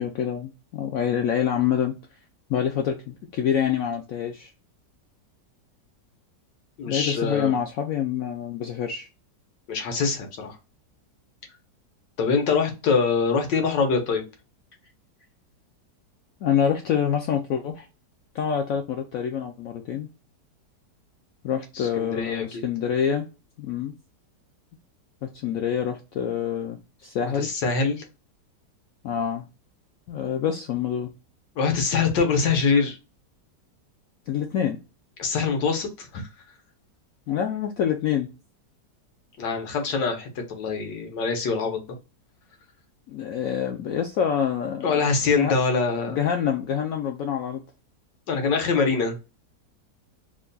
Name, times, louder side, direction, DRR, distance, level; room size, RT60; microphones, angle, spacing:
voice 1, 0.0-1.9 2.5-4.5 6.9-9.1 16.4-17.9 18.3-20.1 21.4-23.3 23.6-23.9 25.2-27.5 29.0-29.4 30.1-31.1 34.3-34.8 37.3-38.3 43.1-45.0 45.2-45.5 46.1-47.6, left 8 dB, 75° left, 0.8 m, -26 dB
voice 2, 6.8-7.6 9.7-10.6 12.2-14.2 21.7-22.5 27.4-28.0 31.6-33.0 35.2-36.2 39.4-41.8 44.8-46.2 48.3-49.2, left 5 dB, 90° left, 1.6 m, -24 dB
3.5 x 2.2 x 3.8 m
omnidirectional pair, 1.9 m